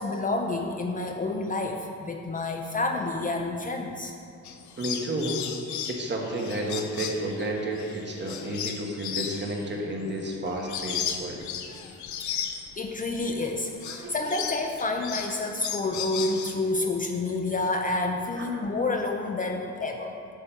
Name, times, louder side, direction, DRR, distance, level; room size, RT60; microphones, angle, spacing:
voice 1, 0.0-4.1 12.8-20.1, left 2 dB, 30° left, 3 dB, 0.5 m, -29 dB
sound 1, 4.4-13.4 13.7-16.7, left 8 dB, 70° left, 0.6 m, -35 dB
voice 2, 4.8-5.4 5.9-11.4 13.8-14.5 18.4-18.5, right 1 dB, 35° right, 0 dB, 1.1 m, -31 dB
8.2 x 3.3 x 5.7 m, 2.4 s
cardioid pair, 90°, 30 cm